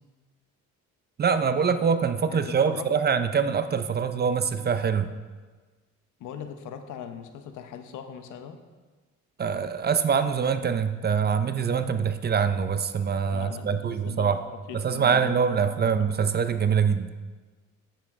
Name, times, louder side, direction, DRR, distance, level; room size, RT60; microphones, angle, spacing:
voice 1, 1.2-5.1 9.4-14.4 14.7-17.1, right 6 dB, 35° right, 10 dB, 0.5 m, -24 dB
voice 2, 2.3-2.9 6.2-8.6 13.3-14.4 14.7-15.4 15.8-16.1, left 8 dB, 85° left, 7 dB, 0.8 m, -40 dB
9.0 x 7.2 x 3.6 m, 1.3 s
cardioid pair, 90°, 30 cm